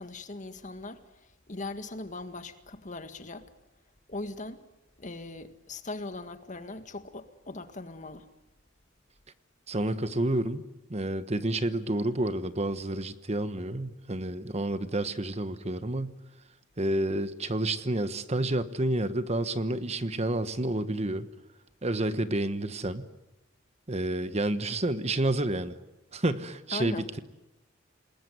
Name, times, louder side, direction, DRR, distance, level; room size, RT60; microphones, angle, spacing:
voice 1, 0.0-3.5 4.1-4.6 5.0-8.3 26.7-27.0, left 2 dB, 40° left, 1.8 m, -40 dB
voice 2, 9.7-16.2 16.8-21.3 21.8-23.1 23.9-25.8 26.1-27.2, right 1 dB, 35° right, 1.2 m, -29 dB
27.5 x 20.5 x 9.4 m
head